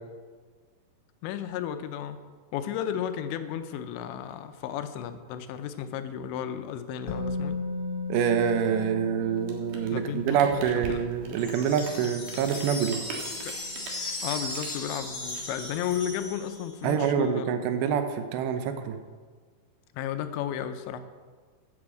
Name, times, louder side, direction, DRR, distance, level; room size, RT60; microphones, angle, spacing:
voice 1, 1.2-2.2 2.5-7.6 9.9-11.0 13.5-13.6 14.2-17.5 19.9-21.0, left 9 dB, 85° left, 10 dB, 3.0 m, -33 dB
Musical instrument, 7.1-15.0 15.2-15.4, left 3 dB, 50° left, 1.9 m, -37 dB
voice 2, 8.1-13.0 16.8-19.0, right 8 dB, 80° right, 7 dB, 3.0 m, -26 dB
Rain, 9.3-16.1, right 4 dB, 55° right, 2.8 m, -43 dB
sound 1, 11.4-16.9, left 1 dB, 20° left, 1.9 m, -37 dB
9.8 x 9.0 x 7.7 m, 1.5 s
omnidirectional pair, 5.1 m